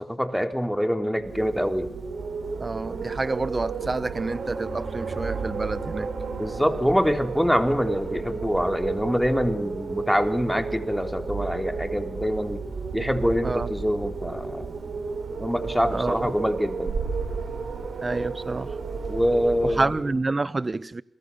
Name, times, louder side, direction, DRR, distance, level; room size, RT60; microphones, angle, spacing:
voice 1, 0.0-1.9 6.4-12.6 12.9-14.7 15.4-16.9 19.1-19.9, equal, ahead, 4.0 m, -25 dB
Wind, 1.2-20.2, right 4 dB, 75° right, 7.8 m, -32 dB
voice 2, 2.6-6.1 13.4-13.7 15.9-16.3 18.0-18.7 19.6-21.0, right 3 dB, 35° right, 1.2 m, -28 dB
29.5 x 22.0 x 7.2 m
cardioid pair, 55°, 0 cm